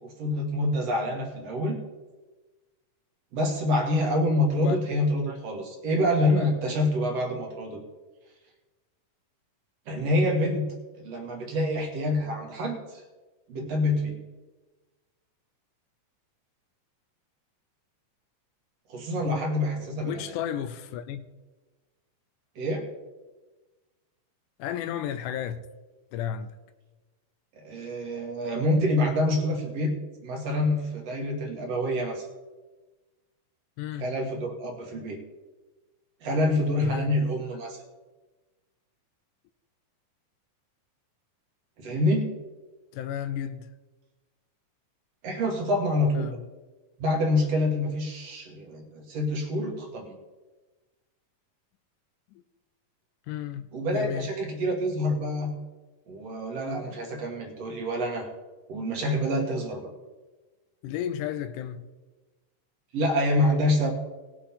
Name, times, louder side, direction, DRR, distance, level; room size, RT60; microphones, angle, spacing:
voice 1, 0.0-1.8 3.3-7.8 9.9-13.0 13.5-14.2 18.9-20.2 22.6-22.8 27.6-29.9 30.2-32.3 34.0-35.2 36.2-37.8 41.8-42.3 45.2-46.3 47.0-50.1 53.7-55.5 56.1-58.3 58.7-59.9 62.9-63.9, left 1 dB, 55° right, 2.3 m, -26 dB
voice 2, 19.8-21.2 24.6-25.7 26.1-26.5 33.8-34.1 36.8-37.1 42.9-43.7 46.1-46.4 52.3-52.4 53.3-53.7 53.9-54.3 56.8-57.0 60.8-61.9, left 10 dB, 80° left, 2.0 m, -33 dB
19.0 x 7.6 x 4.3 m
omnidirectional pair, 3.8 m